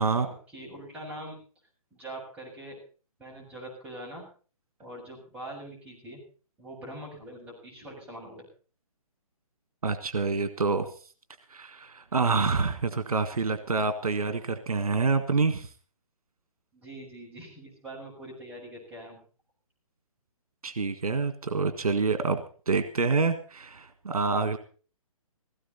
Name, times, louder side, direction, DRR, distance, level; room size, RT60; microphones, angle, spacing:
voice 1, 0.0-1.4 1.9-2.8 3.2-4.2 4.8-6.2 6.6-8.4 16.7-19.2, right 1 dB, 10° right, -4 dB, 7.1 m, -43 dB
voice 2, 9.8-10.9 11.5-15.7 20.6-24.6, right 4 dB, 85° right, 10 dB, 1.8 m, -27 dB
17.5 x 16.0 x 4.1 m, 0.38 s
hypercardioid pair, 155°, 18 cm